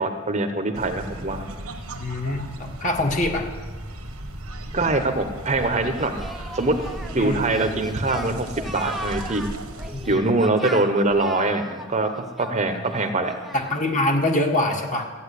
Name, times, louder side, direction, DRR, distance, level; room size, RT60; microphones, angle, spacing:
voice 1, 0.0-1.4 4.7-6.1 6.5-6.7 7.1-9.5 10.1-13.3, right 2 dB, 30° right, 7 dB, 0.9 m, -23 dB
sound 1, 0.7-10.1, right 1 dB, 85° right, 1.5 m, -36 dB
voice 2, 1.9-3.5 7.2-7.7 9.9-10.4 12.7-12.8 13.5-15.1, left 1 dB, 35° left, 2 dB, 1.7 m, -25 dB
Singing, 5.6-13.9, equal, ahead, 0.6 m, -38 dB
14.5 x 8.9 x 8.3 m, 1.4 s
head